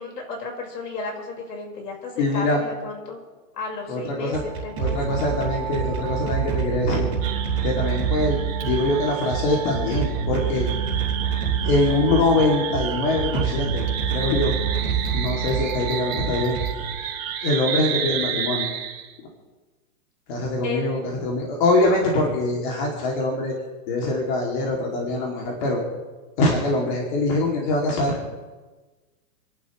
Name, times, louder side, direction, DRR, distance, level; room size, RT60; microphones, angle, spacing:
voice 1, 0.0-3.2 3.6-5.5 20.6-20.8, left 4 dB, 70° left, 1 dB, 5.0 m, -33 dB
voice 2, 2.2-2.6 3.9-4.4 4.8-7.1 7.6-10.7 11.6-13.8 14.1-14.5 15.1-16.6 17.4-18.7 20.3-23.5 23.9-25.8 26.4-28.2, left 2 dB, 30° left, -2 dB, 2.6 m, -23 dB
sound 1, 4.2-17.4, right 7 dB, 10° right, 3.8 m, -27 dB
sound 2, 7.2-19.1, right 8 dB, 55° right, 3.1 m, -32 dB
30.0 x 11.5 x 3.2 m, 1.3 s
hypercardioid pair, 180°, 49 cm